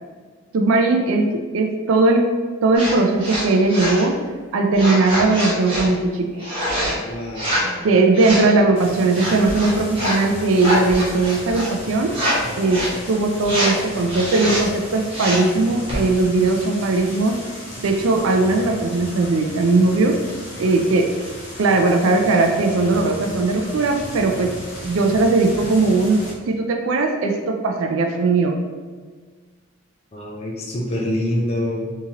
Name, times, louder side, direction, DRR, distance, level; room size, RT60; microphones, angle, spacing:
voice 1, 0.5-2.3 2.6-4.2 4.5-6.5 7.8-12.2 12.6-12.8 13.1-17.4 17.8-20.2 20.6-21.1 21.6-24.5 24.8-28.6, right 3 dB, 70° right, 4 dB, 0.4 m, -18 dB
sound 1, 2.7-2.9 3.2-4.0 4.7-5.9 6.4-6.9 7.3-7.7 8.1-8.5 9.1-10.2 10.5-11.7 12.1-12.4 12.6-13.0 13.4-13.8 14.1-14.6 15.1-15.5 15.9-16.0, equal, 25° right, 1.3 m, -25 dB
voice 2, 7.0-7.9 30.1-31.9, left 1 dB, 30° left, -1 dB, 0.4 m, -26 dB
zoo waterfall again, 8.8-26.3, left 1 dB, 60° left, 1.3 m, -36 dB
3.6 x 2.8 x 2.9 m, 1.5 s
head